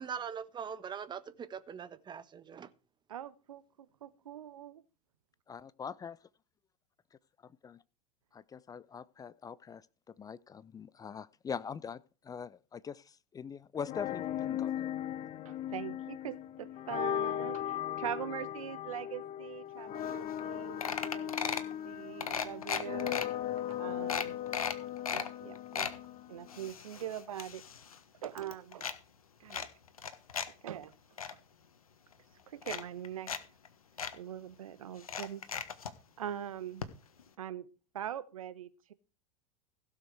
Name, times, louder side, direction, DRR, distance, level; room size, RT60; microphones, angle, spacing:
voice 1, 0.0-2.7, right 7 dB, 25° right, 1.2 m, -42 dB
voice 2, 3.1-4.8 15.4-21.6 21.8-23.3 23.7-24.4 24.8-25.9 26.3-27.6 28.2-28.9 29.4-29.7 30.6-30.9 31.3-31.4 32.5-33.3 34.1-35.4 36.2-36.9 37.4-37.7 37.9-38.9, right 10 dB, 70° right, 1.0 m, -42 dB
voice 3, 5.5-6.1 7.1-7.8 8.3-14.9, left 6 dB, 20° left, 0.6 m, -43 dB
sound 1, 13.8-26.7, left 11 dB, 40° left, 1.1 m, -38 dB
sound 2, 20.1-20.2 20.4-20.5 20.8-21.7 22.2-23.2 23.7-23.8 24.1-25.3 25.5-26.0 26.5-28.0 28.2-29.0 29.5-30.5 30.8-31.3 32.1-32.2 32.6-33.4 33.6-33.7 34.0-34.1 35.0-35.9 36.8-36.9 37.2-37.3, left 7 dB, 80° left, 1.4 m, -36 dB
16.5 x 6.9 x 4.8 m
figure-of-eight pair, 85°, 18 cm